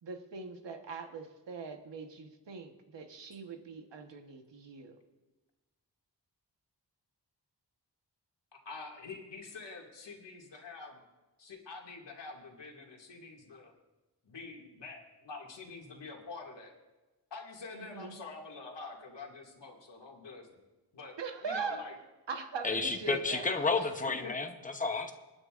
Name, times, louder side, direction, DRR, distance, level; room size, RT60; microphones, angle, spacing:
voice 1, 0.0-5.0 17.7-18.2 21.2-21.9 22.3-23.5, right 5 dB, 85° right, 5 dB, 1.3 m, -41 dB
voice 2, 8.7-11.0 11.4-13.7 14.2-16.8 17.3-20.6 20.9-21.2 21.4-22.0 22.6-22.8 23.7-24.3, left 4 dB, 80° left, 0 dB, 2.3 m, -46 dB
voice 3, 22.6-25.1, left 3 dB, 20° left, 5 dB, 0.9 m, -31 dB
27.5 x 9.6 x 2.5 m, 1.2 s
wide cardioid pair, 165°, 42 cm